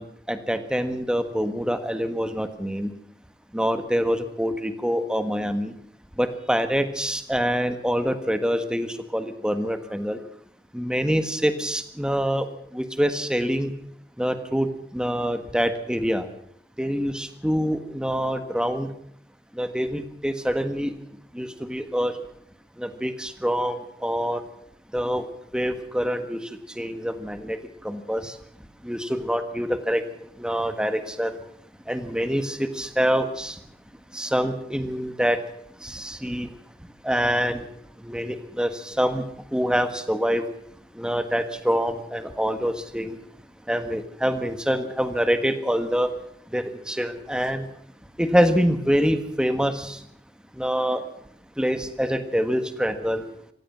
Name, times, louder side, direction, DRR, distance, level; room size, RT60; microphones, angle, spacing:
voice 1, 0.0-2.9 3.5-5.7 6.2-10.2 10.7-12.5 12.7-13.7 14.2-16.3 16.8-18.9 19.5-20.9 21.3-22.1 22.8-24.4 24.9-25.2 25.5-26.5 26.7-28.4 28.8-30.0 30.4-31.4 31.9-33.6 34.1-35.4 35.8-36.5 37.0-37.6 38.0-39.3 39.5-40.5 40.9-43.2 43.7-46.1 46.5-47.6 48.2-50.0 50.5-51.0 51.6-53.2, equal, 5° right, 9 dB, 1.5 m, -25 dB
26.0 x 15.5 x 7.4 m, 0.68 s
head